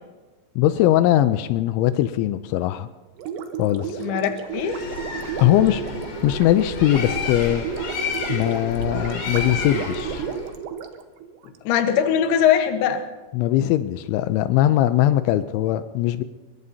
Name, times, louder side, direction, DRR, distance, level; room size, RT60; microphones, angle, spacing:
voice 1, 0.6-2.9 3.6-4.0 5.4-5.8 6.2-7.6 8.3-10.3 13.3-16.2, left 13 dB, 85° left, 11 dB, 3.0 m, -20 dB
Gurgling, 3.2-11.6, right 7 dB, 85° right, 3.4 m, -33 dB
voice 2, 4.0-4.8 11.6-13.0, left 9 dB, 70° left, 6 dB, 3.0 m, -21 dB
Bird, 4.5-10.5, left 4 dB, 40° left, 2.9 m, -31 dB
23.0 x 22.0 x 2.8 m, 1.3 s
omnidirectional pair, 5.3 m